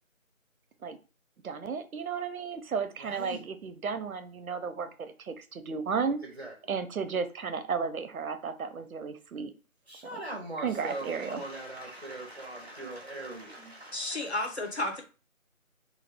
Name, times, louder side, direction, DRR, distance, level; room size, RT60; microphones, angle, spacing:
voice 1, 1.4-6.2 6.7-9.5 10.1-10.2 10.6-11.4, right 5 dB, 90° right, 10 dB, 0.6 m, -33 dB
voice 2, 3.0-3.4 6.4-6.5 9.9-14.3, right 2 dB, 40° right, 0 dB, 0.5 m, -40 dB
voice 3, 13.6-15.0, left 2 dB, 50° left, 3 dB, 0.6 m, -33 dB
2.3 x 2.0 x 3.4 m, 0.35 s
figure-of-eight pair, 170°, 41 cm